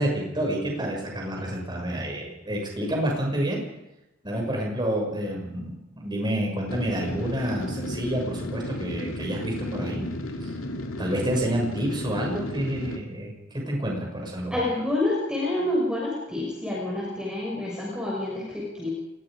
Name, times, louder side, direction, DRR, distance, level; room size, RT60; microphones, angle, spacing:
voice 1, 0.0-3.6 4.2-10.1 10.4-10.5 11.0-14.6, right 1 dB, 20° right, 0 dB, 6.6 m, -29 dB
sound 1, 6.7-13.0, left 1 dB, 75° left, 2.7 m, -33 dB
voice 2, 14.5-18.9, left 1 dB, 5° right, -3 dB, 6.2 m, -28 dB
29.0 x 20.5 x 5.1 m, 0.93 s
head